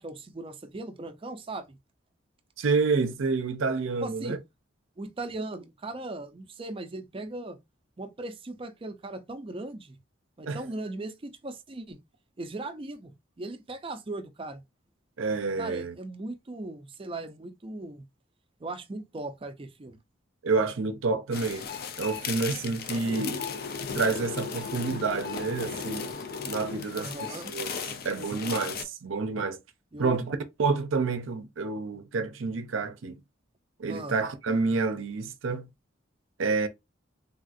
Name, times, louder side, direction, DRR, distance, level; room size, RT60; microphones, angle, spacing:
voice 1, 0.0-1.8 4.0-4.4 5.0-7.6 8.0-10.0 10.4-12.0 12.4-13.1 13.4-14.6 15.6-18.0 18.6-20.0 26.9-27.5 29.9-30.2 33.9-34.2, right 2 dB, 25° right, 0.5 m, -38 dB
voice 2, 2.6-4.4 10.5-10.6 15.2-15.9 20.4-21.7 22.0-23.4 23.9-26.2 26.5-27.1 27.5-27.7 28.0-29.6 30.0-33.2 33.8-35.7 36.4-36.7, right 4 dB, 75° right, 0.6 m, -28 dB
sound 1, 21.3-28.8, left 5 dB, 50° left, 0.4 m, -36 dB
3.5 x 2.4 x 2.5 m
head